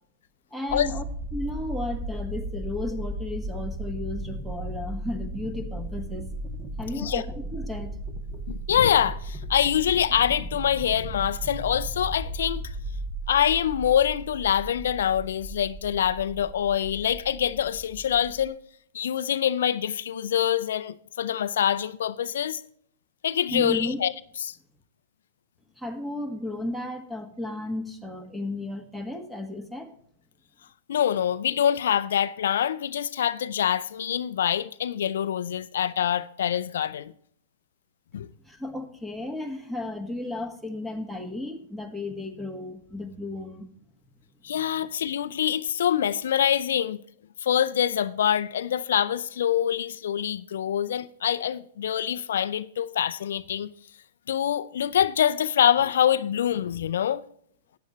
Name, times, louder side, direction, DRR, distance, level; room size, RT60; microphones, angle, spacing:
voice 1, 0.5-1.0 1.3-6.3 6.8-8.0 23.5-24.0 25.8-29.9 38.4-43.7 44.4-44.6, left 2 dB, 5° right, 1.6 m, -34 dB
sound 1, 0.7-18.5, right 1 dB, 25° right, 2.3 m, -36 dB
voice 2, 8.5-12.7 13.3-18.6 18.9-22.6 23.2-24.1 24.4-24.6 30.9-37.1 38.1-38.3 44.4-47.0 47.4-53.7 54.3-57.2, left 9 dB, 70° left, 0.4 m, -25 dB
14.0 x 9.6 x 3.1 m
hypercardioid pair, 110°, 0 cm